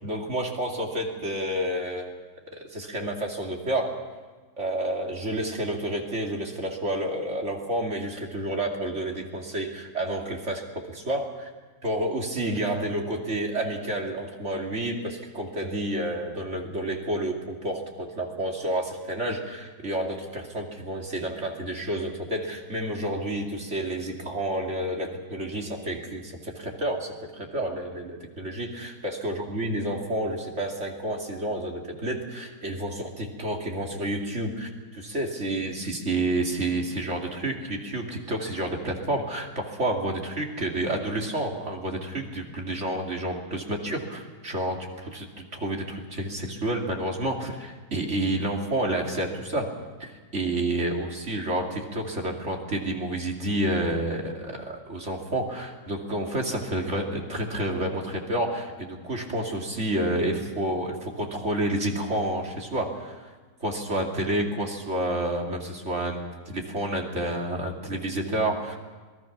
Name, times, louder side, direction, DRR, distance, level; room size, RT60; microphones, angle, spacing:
voice 1, 0.0-2.2 2.5-4.0 4.6-11.5 11.8-49.7 50.0-63.3 63.6-68.8, right 1 dB, 40° right, 1 dB, 2.7 m, -30 dB
27.0 x 20.0 x 6.0 m, 1.4 s
omnidirectional pair, 2.0 m